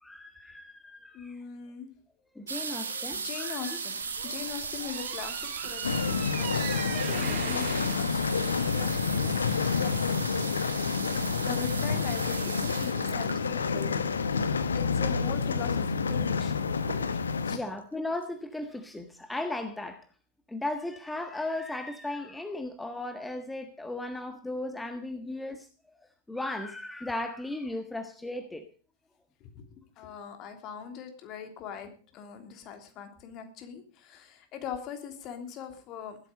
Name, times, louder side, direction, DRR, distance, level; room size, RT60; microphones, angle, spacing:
voice 1, 0.0-1.4 2.3-3.8 4.4-4.5 17.5-20.0 20.5-25.7 26.3-28.7, left 2 dB, 5° left, 7 dB, 1.5 m, -36 dB
voice 2, 1.1-1.9 3.1-6.5 7.1-8.2 8.7-9.4 9.8-10.2 11.2-14.0 14.7-16.7 17.1-17.2 17.4-17.6 29.4-29.6 30.0-36.2, left 7 dB, 35° left, 6 dB, 3.2 m, -41 dB
sound 1, 2.5-15.0 15.8-15.9 16.1-16.5 16.8-17.4 17.9-18.0 18.2-18.3, right 5 dB, 70° right, 2.3 m, -37 dB
sound 2, 4.0-9.2, right 9 dB, 40° right, 2.5 m, -40 dB
sound 3, 5.8-17.6, left 5 dB, 70° left, 1.2 m, -29 dB
15.5 x 12.5 x 5.3 m, 0.40 s
figure-of-eight pair, 90°, 0 cm